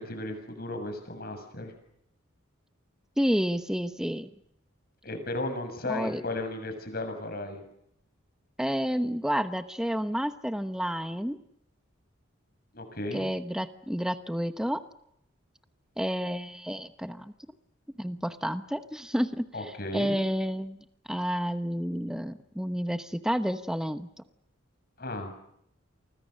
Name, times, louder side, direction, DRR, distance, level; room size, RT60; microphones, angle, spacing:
voice 1, 0.0-1.7 5.0-7.6 12.7-13.2 19.5-20.2 25.0-25.3, left 2 dB, 50° left, 7 dB, 7.0 m, -35 dB
voice 2, 3.2-4.3 5.9-6.2 8.6-11.4 13.1-14.8 16.0-17.3 18.0-24.1, equal, 5° right, 9 dB, 1.0 m, -30 dB
30.0 x 24.5 x 6.6 m, 0.75 s
head